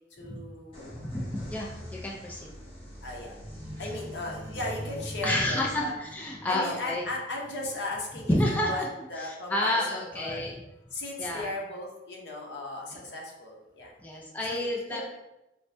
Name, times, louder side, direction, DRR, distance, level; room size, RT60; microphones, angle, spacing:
voice 1, 0.1-0.9 3.0-3.3 3.8-5.9 6.5-8.8 9.1-10.4 10.9-13.9 14.4-15.1, left 2 dB, 75° left, -2 dB, 0.7 m, -36 dB
sound 1, 0.7-8.3, equal, 30° left, 0.8 m, -42 dB
voice 2, 1.1-2.6 3.8-4.0 5.2-7.0 8.3-8.9 9.2-10.6 11.2-11.5 12.9-13.0 14.0-15.0, left 1 dB, 10° left, -3 dB, 0.3 m, -30 dB
4.4 x 2.1 x 2.6 m, 0.94 s
head